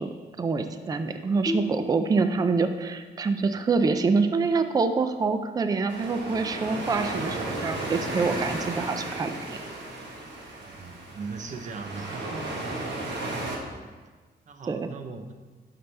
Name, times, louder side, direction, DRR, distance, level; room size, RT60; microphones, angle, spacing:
voice 1, 0.0-9.6 14.7-14.9, right 4 dB, 20° right, 8 dB, 0.4 m, -26 dB
sound 1, 1.4-4.8, left 1 dB, 10° left, 1.2 m, -37 dB
sound 2, 5.9-13.6, right 2 dB, 85° right, 1.4 m, -34 dB
voice 2, 10.6-12.5 14.5-15.3, right 4 dB, 45° right, 6 dB, 0.7 m, -39 dB
12.0 x 5.8 x 3.3 m, 1.4 s
wide cardioid pair, 170°, 18 cm